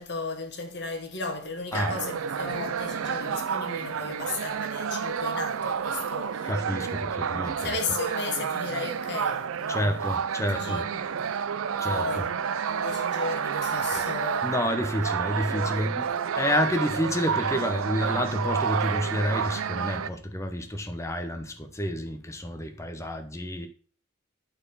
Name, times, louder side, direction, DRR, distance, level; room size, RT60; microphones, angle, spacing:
voice 1, 0.0-6.5 6.8-10.2 10.5-11.4 11.8-14.5 15.5-15.9, left 3 dB, 55° left, 1.6 m, -35 dB
sound 1, 1.7-20.1, right 7 dB, 90° right, 0.5 m, -30 dB
voice 2, 6.4-7.7 9.7-10.8 11.8-12.2 14.4-23.7, equal, 15° left, 1.0 m, -29 dB
8.7 x 4.4 x 5.7 m
head